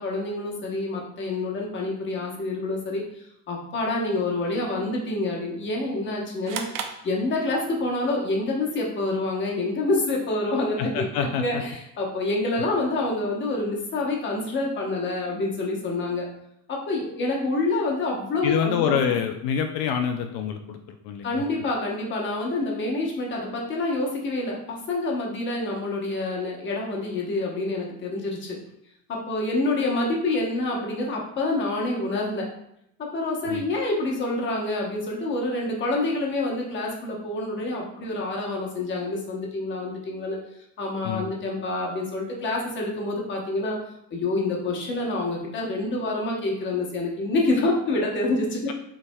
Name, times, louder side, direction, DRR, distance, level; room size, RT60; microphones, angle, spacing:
voice 1, 0.0-6.6 7.0-16.3 16.7-19.1 21.2-28.6 29.1-32.5 33.0-40.4 40.8-43.8 44.1-48.7, left 2 dB, 30° left, -1 dB, 1.0 m, -27 dB
sound 1, 6.4-7.9, right 7 dB, 55° right, 0.6 m, -36 dB
voice 2, 10.8-11.6 18.4-20.8 21.0-21.4 33.5-33.6 41.0-41.2, left 8 dB, 75° left, 6 dB, 0.5 m, -26 dB
7.1 x 3.3 x 2.3 m, 0.77 s
cardioid pair, 170°, 40 cm